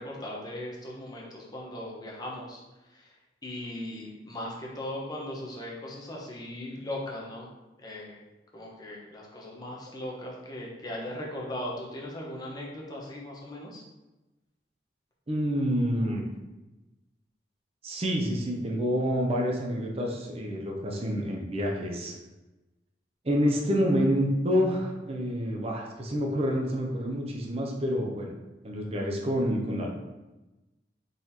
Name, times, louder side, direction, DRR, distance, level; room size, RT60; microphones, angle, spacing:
voice 1, 0.0-2.6 2.9-3.1 3.4-7.5 7.8-8.2 8.5-13.8, left 1 dB, 25° left, -3 dB, 0.9 m, -38 dB
voice 2, 15.3-16.2 17.8-22.1 23.2-28.3 28.6-29.9, equal, 35° right, 0 dB, 0.7 m, -28 dB
4.0 x 3.1 x 4.1 m, 1.1 s
head